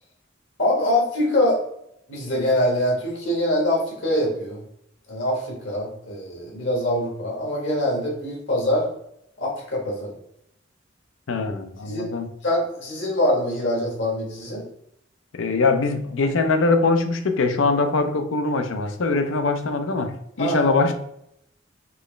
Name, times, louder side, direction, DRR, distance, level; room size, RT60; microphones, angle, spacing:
voice 1, 0.6-1.6 2.1-4.6 5.1-8.9 9.4-10.1 11.8-12.1 12.4-14.6 20.4-20.7, left 1 dB, 70° left, -2 dB, 1.5 m, -24 dB
voice 2, 11.3-12.3 15.3-20.1 20.4-20.9, left 3 dB, 85° left, 7 dB, 0.6 m, -22 dB
4.6 x 3.1 x 3.2 m, 0.76 s
head